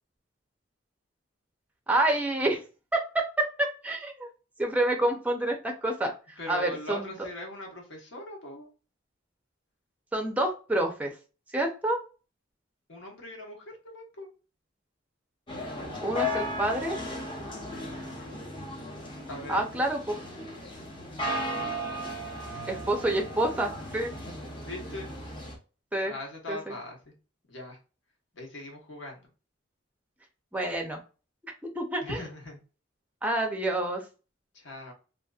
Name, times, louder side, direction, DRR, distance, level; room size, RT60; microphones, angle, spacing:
voice 1, 1.9-2.6 2.9-4.3 4.6-7.3 10.1-11.1 11.5-12.0 16.0-17.0 19.5-20.2 22.7-24.1 25.9-26.1 26.5-26.8 30.5-31.0 31.6-32.2 33.2-34.0, right 1 dB, 10° right, 2 dB, 0.5 m, -28 dB
voice 2, 6.4-8.7 12.9-14.3 19.3-19.6 24.6-25.1 26.0-27.1 27.5-27.8 28.3-29.2 32.0-32.6 34.5-34.9, left 1 dB, 75° left, 0 dB, 1.2 m, -40 dB
sound 1, 15.5-25.6, left 1 dB, 25° left, 0.8 m, -36 dB
2.9 x 2.5 x 2.3 m, 0.34 s
head